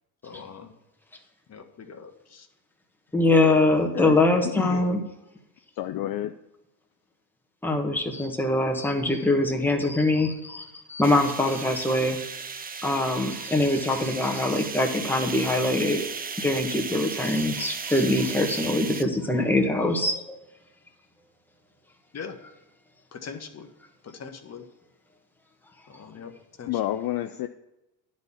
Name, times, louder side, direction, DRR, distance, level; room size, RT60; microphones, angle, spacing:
voice 1, 0.2-0.7 1.5-2.5 4.3-4.4 22.1-22.3 23.1-23.7 24.0-24.6 25.9-26.3 26.6-26.7, left 6 dB, 35° left, 6 dB, 1.2 m, -41 dB
voice 2, 3.1-5.0 7.6-12.2 12.8-16.0 16.4-20.4, left 2 dB, 5° left, 2 dB, 1.4 m, -23 dB
voice 3, 4.4-4.8 5.8-6.3 26.7-27.5, left 13 dB, 50° left, 8 dB, 0.5 m, -29 dB
sound 1, 11.0-19.0, right 5 dB, 20° right, 0.6 m, -35 dB
10.5 x 4.2 x 7.2 m, 0.92 s
supercardioid pair, 85°, 46 cm